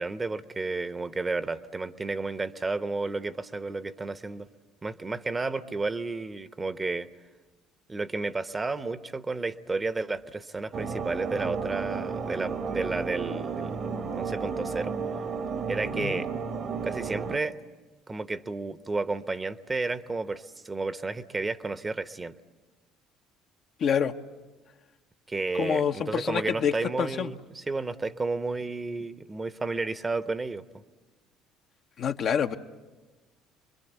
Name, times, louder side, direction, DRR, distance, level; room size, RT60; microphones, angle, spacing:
voice 1, 0.0-4.5 4.8-7.1 7.9-15.0 15.7-16.3 16.8-17.6 18.1-22.3 25.3-30.6, right 3 dB, 25° right, 12 dB, 1.0 m, -32 dB
sound 1, 10.7-17.4, right 5 dB, 50° right, 1.4 m, -33 dB
voice 2, 23.8-24.1 25.6-26.7 27.0-27.3 32.0-32.6, left 8 dB, 55° left, 5 dB, 1.1 m, -27 dB
28.0 x 23.0 x 8.2 m, 1.3 s
hypercardioid pair, 60°, 0 cm